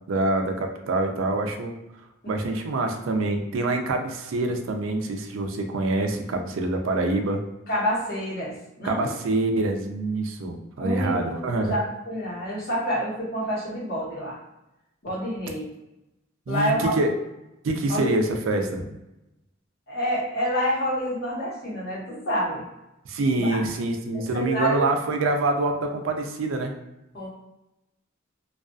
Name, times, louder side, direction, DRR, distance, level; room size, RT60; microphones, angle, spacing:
voice 1, 0.1-1.7 2.3-7.4 8.8-11.8 16.5-17.1 17.6-18.9 23.1-26.7, right 2 dB, 75° right, 4 dB, 0.4 m, -25 dB
voice 2, 7.7-9.0 10.8-14.4 15.0-15.7 16.5-16.9 17.9-18.1 19.9-22.6 23.3-23.6 24.3-24.8 27.1-27.3, equal, 50° left, -6 dB, 1.0 m, -28 dB
2.4 x 2.3 x 2.3 m, 0.93 s
head